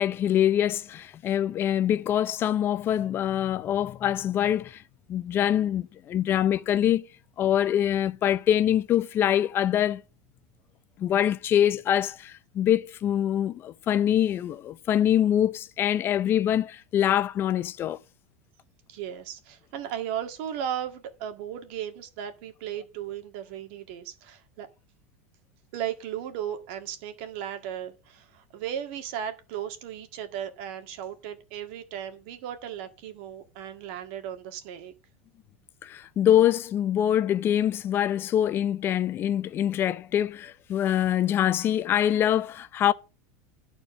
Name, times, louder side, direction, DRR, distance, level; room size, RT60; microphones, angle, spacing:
voice 1, 0.0-4.8 5.1-7.1 7.4-10.0 11.0-18.0 35.8-42.9, left 10 dB, 30° left, 0.5 m, -24 dB
voice 2, 18.9-24.7 25.7-34.9, right 10 dB, 65° right, 1.8 m, -36 dB
11.5 x 4.5 x 6.6 m
supercardioid pair, 140°, 7 cm